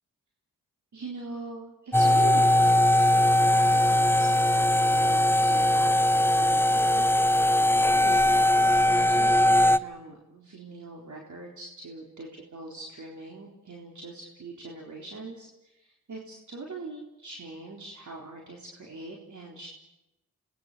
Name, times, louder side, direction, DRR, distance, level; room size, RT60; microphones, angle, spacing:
voice 1, 0.9-8.3 8.7-19.7, right 2 dB, 55° right, -1 dB, 4.0 m, -43 dB
sound 1, 1.9-9.8, left 1 dB, 5° left, 0.7 m, -21 dB
27.0 x 20.0 x 6.8 m, 0.94 s
supercardioid pair, 45°, 36 cm